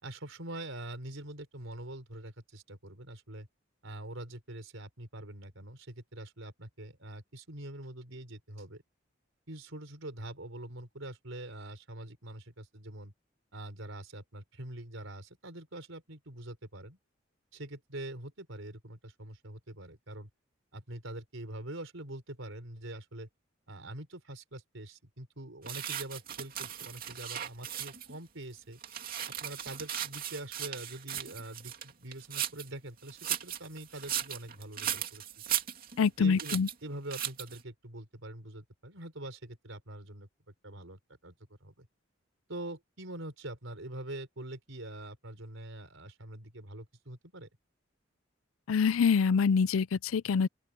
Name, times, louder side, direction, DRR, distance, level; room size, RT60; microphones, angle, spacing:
voice 1, 0.0-3.5 3.8-8.8 9.5-13.1 13.5-17.0 17.5-20.3 20.7-23.3 23.7-28.8 29.4-35.3 36.0-36.6 36.8-40.3 40.6-41.3 41.6-41.9 42.5-47.5, right 1 dB, 75° right, 4.1 m, -44 dB
sound 1, 25.7-28.2 28.6-32.7 33.1-36.1 36.4-36.7 37.1-37.6, right 10 dB, 45° right, 2.6 m, -37 dB
voice 2, 36.0-36.7 48.7-50.5, left 5 dB, 90° left, 0.4 m, -25 dB
open air
head